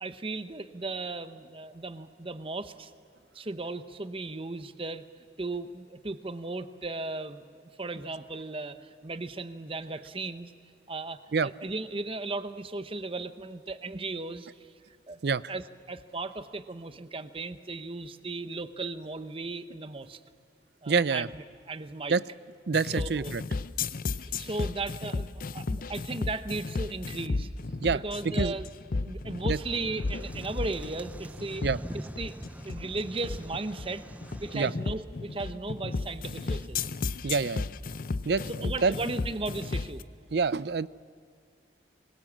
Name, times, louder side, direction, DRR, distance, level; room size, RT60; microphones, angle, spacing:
voice 1, 0.0-2.9 3.3-5.1 5.4-7.4 7.8-10.5 10.9-14.5 15.1-15.2 15.5-20.2 20.8-22.2 22.9-23.3 24.2-27.5 27.9-28.7 29.0-31.7 31.9-32.3 32.6-34.0 34.4-36.9 38.4-40.0, right 3 dB, 30° right, 11 dB, 0.9 m, -36 dB
voice 2, 20.9-21.3 22.1-22.2 22.7-23.4 27.8-28.0 28.3-28.6 29.4-29.6 31.6-31.8 34.5-34.7 37.2-37.6 38.2-38.9 40.3-40.9, right 5 dB, 65° right, 19 dB, 0.5 m, -26 dB
sound 1, 22.7-40.0, left 3 dB, 50° left, 0.6 m, -33 dB
sound 2, 29.5-34.7, right 1 dB, 10° right, 0.5 m, -44 dB
25.5 x 21.0 x 7.4 m, 2.4 s
head